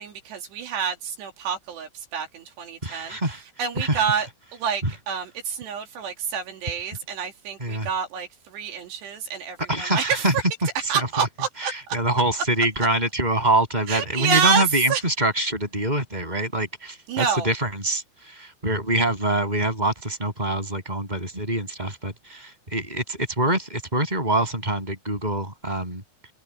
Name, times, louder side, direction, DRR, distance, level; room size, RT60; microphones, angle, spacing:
voice 1, 0.0-10.2 10.9-12.0 13.9-14.6 14.9-15.0 17.1-17.5, right 7 dB, 80° right, 4.7 m, -28 dB
voice 2, 2.8-3.4 3.8-4.1 4.8-4.9 7.6-7.9 9.7-10.3 10.9-11.3 11.6-26.0, right 1 dB, 10° right, 7.5 m, -25 dB
omnidirectional pair, 4.9 m